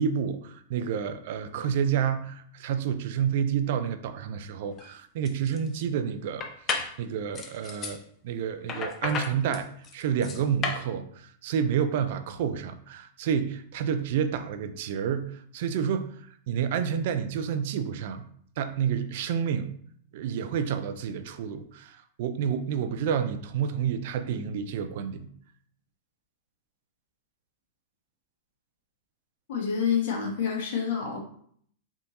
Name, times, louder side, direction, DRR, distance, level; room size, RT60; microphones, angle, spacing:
voice 1, 0.0-6.5 6.7-18.3 18.6-19.7 20.1-25.3, right 8 dB, 65° right, 10 dB, 0.4 m, -29 dB
sound 1, 4.7-4.9 5.2-5.8 6.4-6.9 7.3-8.0 8.7-10.9, left 5 dB, 30° left, 0.6 m, -33 dB
voice 2, 29.5-31.2, left 7 dB, 70° left, -1 dB, 1.3 m, -28 dB
3.5 x 2.8 x 4.0 m, 0.62 s
hypercardioid pair, 120°, 0 cm